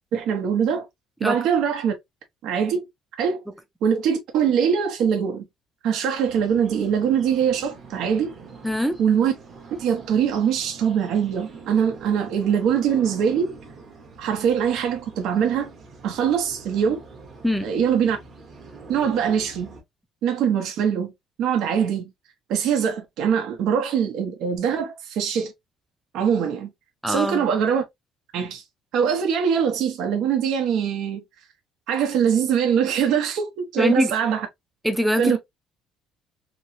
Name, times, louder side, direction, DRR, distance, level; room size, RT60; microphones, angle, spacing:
voice 1, 0.1-0.9 1.2-1.9 2.4-2.9 3.2-3.4 3.8-5.5 5.8-8.3 9.0-9.3 9.8-13.5 14.2-15.7 16.0-17.0 17.6-18.2 18.9-19.7 20.2-21.1 21.4-22.1 22.5-25.5 26.1-26.7 27.1-27.8 28.3-28.6 28.9-31.2 31.9-34.5 35.1-35.4, right 7 dB, 70° right, 0.9 m, -22 dB
sound 1, 6.3-19.8, right 4 dB, 30° right, 0.9 m, -44 dB
voice 2, 8.6-9.0 17.4-17.7 27.0-27.5 33.8-34.1 34.8-35.4, equal, ahead, 0.5 m, -22 dB
3.0 x 2.9 x 2.7 m
cardioid pair, 155°, 0 cm